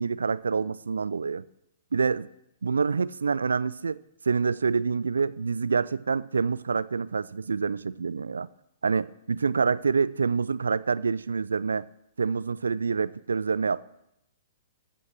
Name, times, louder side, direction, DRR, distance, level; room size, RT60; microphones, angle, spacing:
voice 1, 0.0-1.5 1.9-2.3 2.6-4.0 4.2-8.5 8.8-11.9 12.2-13.8, right 5 dB, 70° right, 0.3 m, -27 dB
14.5 x 5.7 x 6.1 m
figure-of-eight pair, 110°, 0 cm